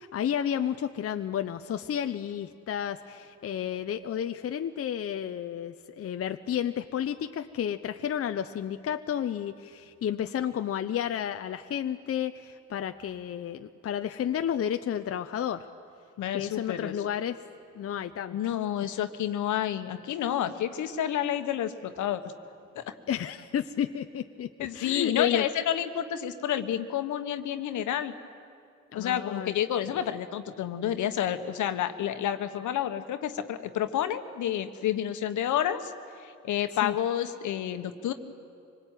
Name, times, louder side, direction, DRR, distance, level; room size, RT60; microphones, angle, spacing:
voice 1, 0.0-15.7 16.3-17.4 17.7-18.5 23.1-24.5 24.7-25.5 28.9-29.5 36.8-36.9, left 9 dB, 50° left, 8 dB, 0.8 m, -31 dB
voice 2, 16.2-16.9 18.3-22.3 22.7-22.9 24.6-28.1 28.9-35.9 36.2-38.1, left 10 dB, 75° left, 9 dB, 1.4 m, -30 dB
25.0 x 20.0 x 9.2 m, 2.3 s
cardioid pair, 90°, 30 cm